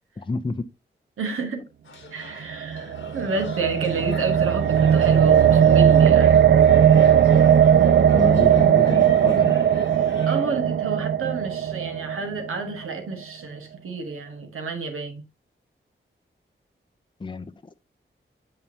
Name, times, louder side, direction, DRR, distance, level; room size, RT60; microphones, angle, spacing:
voice 1, 0.2-0.6 8.1-9.5 17.2-17.8, left 3 dB, 25° left, 0.5 m, -29 dB
voice 2, 1.2-1.7 2.1-6.5 10.3-15.2, right 3 dB, 85° right, 1.3 m, -30 dB
sound 1, 1.8-10.6, left 4 dB, 65° left, 1.3 m, -45 dB
sound 2, 2.5-12.7, right 9 dB, 55° right, 0.4 m, -18 dB
6.5 x 5.4 x 2.7 m
cardioid pair, 40°, 21 cm